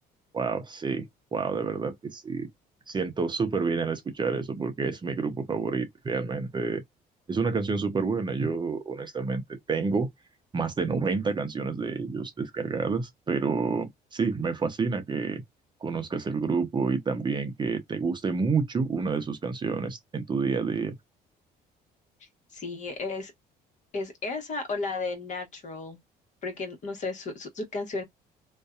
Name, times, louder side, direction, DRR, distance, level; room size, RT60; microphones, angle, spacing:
voice 1, 0.3-2.5 2.9-6.8 7.3-10.1 10.5-15.4 15.8-20.9, right 4 dB, 25° right, 0.6 m, -29 dB
voice 2, 22.5-23.3 23.9-26.0 26.4-28.0, left 3 dB, 45° left, 1.1 m, -33 dB
2.6 x 2.2 x 2.4 m
cardioid pair, 110°, 17 cm